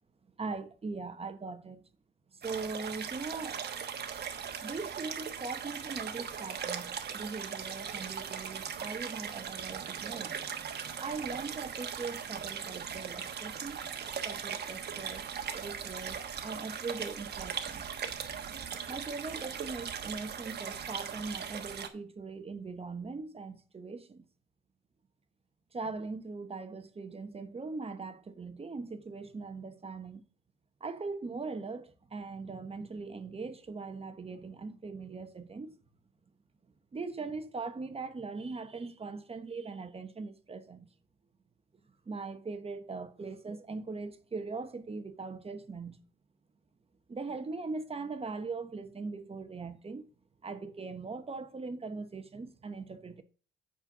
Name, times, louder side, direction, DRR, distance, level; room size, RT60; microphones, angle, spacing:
voice 1, 0.4-1.8 2.4-3.6 4.6-10.3 11.0-13.9 14.2-16.2 16.4-17.9 18.9-24.2 25.7-30.2 30.8-35.8 36.9-40.9 42.1-46.0 47.1-50.0 50.4-53.2, right 4 dB, 30° right, 1.1 m, -40 dB
sound 1, 2.4-21.9, right 7 dB, 55° right, 1.3 m, -39 dB
8.9 x 4.4 x 6.0 m
cardioid pair, 90°, 20 cm